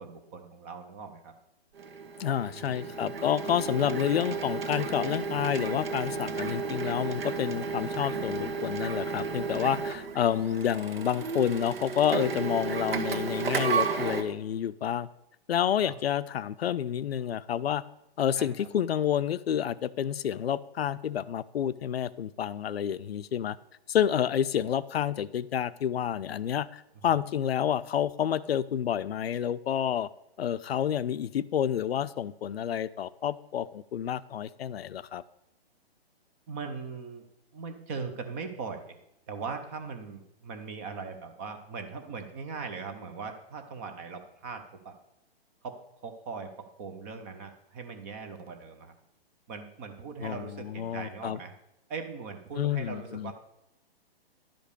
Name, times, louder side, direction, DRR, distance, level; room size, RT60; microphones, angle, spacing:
voice 1, 0.0-1.3 2.5-3.0 15.8-16.0 18.4-18.7 36.5-37.3 37.5-39.0 39.3-44.9 45.6-45.8 46.0-48.9 49.5-51.5 51.9-53.3, right 5 dB, 15° right, 6 dB, 0.5 m, -40 dB
Printer, 1.8-14.2, right 5 dB, 70° right, 1.5 m, -33 dB
voice 2, 2.2-15.1 15.5-17.8 18.2-23.6 23.9-30.1 30.4-35.2 50.2-51.4 52.6-53.3, left 9 dB, 75° left, 16 dB, 0.6 m, -29 dB
11.5 x 5.2 x 6.6 m, 0.85 s
hypercardioid pair, 155°, 31 cm